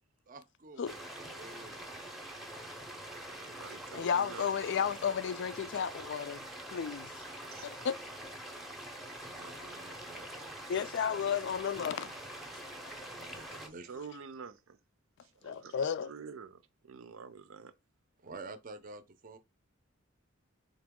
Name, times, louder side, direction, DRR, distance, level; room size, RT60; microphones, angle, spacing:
voice 1, 0.3-2.0 9.0-10.6 13.1-13.9 18.2-19.4, right 3 dB, 40° right, 0.5 m, -50 dB
sound 1, 0.8-13.7, right 1 dB, ahead, 0.6 m, -45 dB
voice 2, 3.3-4.7 7.5-7.6 13.2-13.6 13.9-14.8 15.2-15.8 16.0-17.7, right 5 dB, 85° right, 0.5 m, -48 dB
voice 3, 3.9-6.5 6.7-7.1 7.6-8.0 10.7-12.1 15.4-16.1, left 7 dB, 60° left, 0.3 m, -33 dB
4.0 x 2.9 x 3.6 m
head